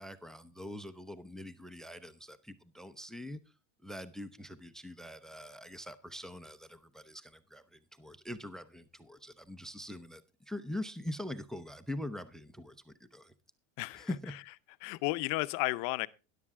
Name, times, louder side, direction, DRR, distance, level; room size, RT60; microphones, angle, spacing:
voice 1, 0.0-3.4 3.8-13.3 13.9-14.4, left 1 dB, ahead, 0.5 m, -43 dB
voice 2, 13.8-14.1 14.8-16.1, left 22 dB, 55° left, 0.7 m, -33 dB
13.0 x 11.0 x 3.6 m
supercardioid pair, 140°, 37 cm